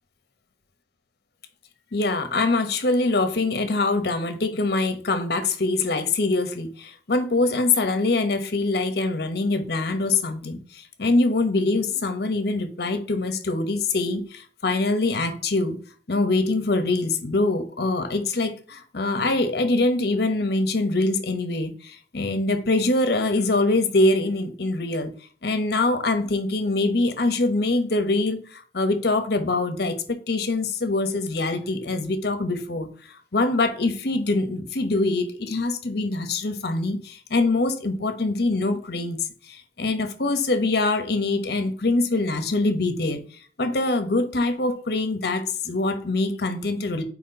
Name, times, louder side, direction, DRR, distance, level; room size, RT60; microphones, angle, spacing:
voice 1, 1.9-15.8 16.1-25.1 25.4-30.0 30.3-32.9 33.3-39.2 39.5-43.2 43.6-47.0, left 2 dB, 65° left, 1.0 m, -24 dB
4.5 x 4.3 x 5.4 m
head